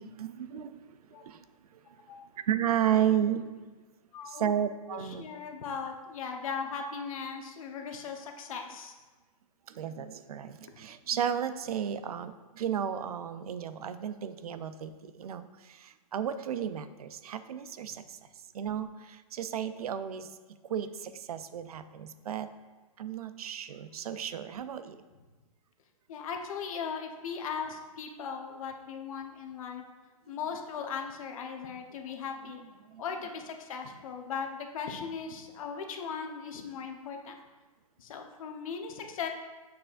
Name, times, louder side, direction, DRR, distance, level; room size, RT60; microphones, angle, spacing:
voice 1, 0.0-1.4 1.7-1.8 2.5-3.5 4.3-5.2 9.7-18.2 18.5-20.3 20.7-22.5 23.0-25.0 30.3-30.4 32.9-33.0, right 9 dB, 75° right, 11 dB, 0.5 m, -33 dB
voice 2, 4.1-4.5 5.0-8.9 17.9-18.0 26.1-29.8 30.3-32.6 33.0-37.4 38.0-39.3, left 6 dB, 65° left, 3 dB, 1.0 m, -38 dB
6.7 x 6.2 x 2.5 m, 1.3 s
hypercardioid pair, 130°, 19 cm